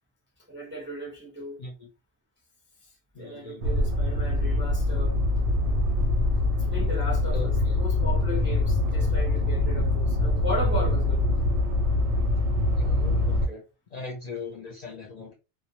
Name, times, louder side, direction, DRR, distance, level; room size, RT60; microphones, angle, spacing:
voice 1, 0.5-1.6 3.2-5.2 6.7-11.2, equal, 15° right, 0.5 m, -36 dB
voice 2, 3.1-3.7 7.3-7.8 12.8-13.6 13.9-15.3, left 3 dB, 50° left, 0.5 m, -38 dB
sound 1, 3.6-13.5, left 2 dB, 90° right, 0.9 m, -24 dB
2.1 x 2.1 x 2.9 m
omnidirectional pair, 1.1 m